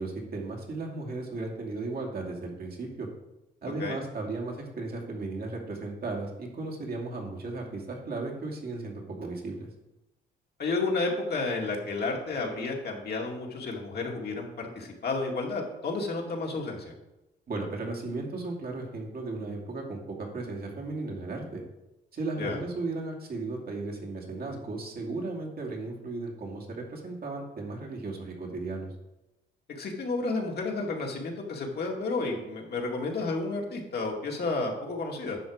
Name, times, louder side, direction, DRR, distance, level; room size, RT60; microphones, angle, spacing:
voice 1, 0.0-3.1 3.6-9.7 17.5-21.6 22.1-28.9, right 3 dB, 50° right, 0 dB, 2.4 m, -35 dB
voice 2, 10.6-16.9 22.4-22.6 29.7-35.4, left 3 dB, 55° left, 0 dB, 2.1 m, -31 dB
10.5 x 5.8 x 4.8 m, 0.96 s
cardioid pair, 90°, 20 cm